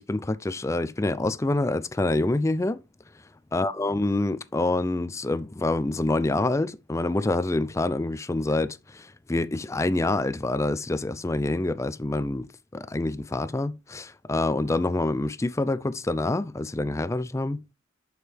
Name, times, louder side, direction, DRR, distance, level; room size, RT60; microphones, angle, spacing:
voice 1, 0.0-2.8 3.5-12.5 12.7-17.6, left 2 dB, 15° left, 0.4 m, -26 dB
7.8 x 6.5 x 3.3 m
head